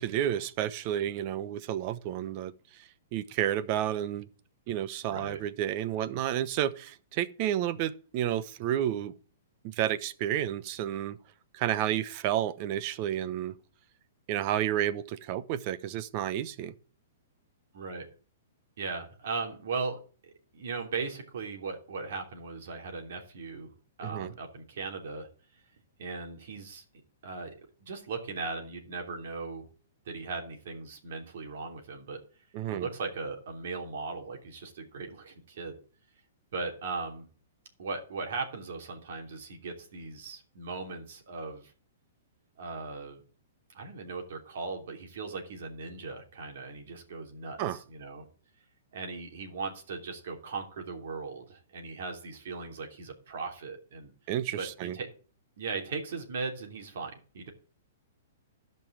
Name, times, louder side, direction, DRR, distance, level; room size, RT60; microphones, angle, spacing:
voice 1, 0.0-2.5 3.1-4.3 4.7-9.1 9.8-11.2 11.5-13.5 14.3-16.7 24.0-24.3 32.5-32.9 47.6-47.8 54.3-55.0, right 11 dB, 40° right, 0.9 m, -31 dB
voice 2, 5.1-5.4 17.7-18.1 18.8-23.7 24.0-25.3 26.0-26.8 27.2-27.5 27.8-29.7 30.0-32.2 32.7-35.8 36.5-37.3 37.8-41.7 42.6-43.2 43.7-48.3 48.9-54.1 54.6-55.1 55.6-57.5, right 4 dB, 65° right, 3.1 m, -38 dB
12.0 x 5.5 x 7.4 m
hypercardioid pair, 140°, 0 cm